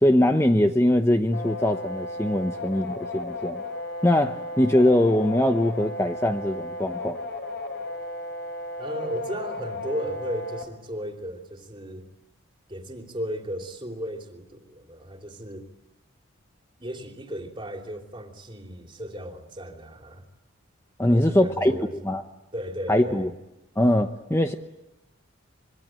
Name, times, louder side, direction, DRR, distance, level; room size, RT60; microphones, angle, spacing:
voice 1, 0.0-3.6 4.0-7.2 21.0-21.8 22.0-22.2 22.9-23.3 23.8-24.5, left 1 dB, 15° left, 6 dB, 0.9 m, -22 dB
sound 1, 1.3-10.6, left 2 dB, 50° left, 5.3 m, -35 dB
voice 2, 8.8-12.1 12.7-15.7 16.8-20.2 21.1-21.9 22.5-23.3, equal, 25° right, 3 dB, 3.1 m, -35 dB
26.0 x 24.0 x 9.0 m, 0.96 s
head